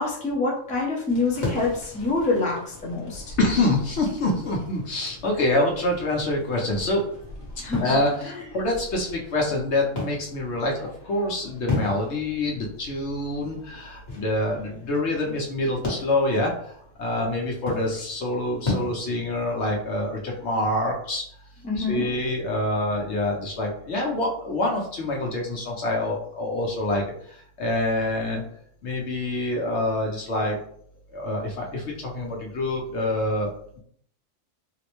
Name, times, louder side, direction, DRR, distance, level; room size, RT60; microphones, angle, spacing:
voice 1, 0.0-3.3 7.6-7.8 8.2-8.5 21.6-22.1, left 3 dB, 10° left, -4 dB, 0.6 m, -26 dB
sound 1, 1.1-20.0, left 2 dB, 35° left, 1.0 m, -37 dB
voice 2, 3.4-7.0 7.8-21.2 21.9-28.4 28.8-30.6 31.1-33.8, left 1 dB, 65° left, -1 dB, 1.0 m, -26 dB
3.8 x 2.1 x 3.0 m, 0.65 s
omnidirectional pair, 1.4 m